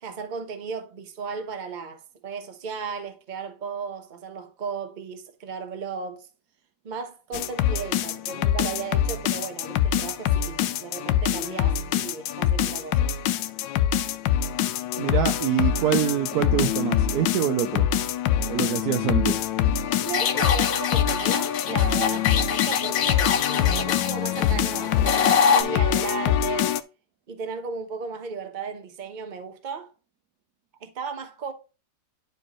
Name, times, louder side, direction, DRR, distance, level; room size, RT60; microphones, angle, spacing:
voice 1, 0.0-6.3 6.8-13.1 20.0-26.7 27.3-29.9 30.8-31.5, right 5 dB, 35° right, 0.9 m, -35 dB
sound 1, 7.3-26.8, left 10 dB, 85° left, 1.3 m, -24 dB
voice 2, 15.0-17.9 18.5-19.5, right 11 dB, 70° right, 0.9 m, -25 dB
sound 2, 20.1-25.6, left 7 dB, 60° left, 1.1 m, -25 dB
10.5 x 4.6 x 3.0 m
omnidirectional pair, 2.0 m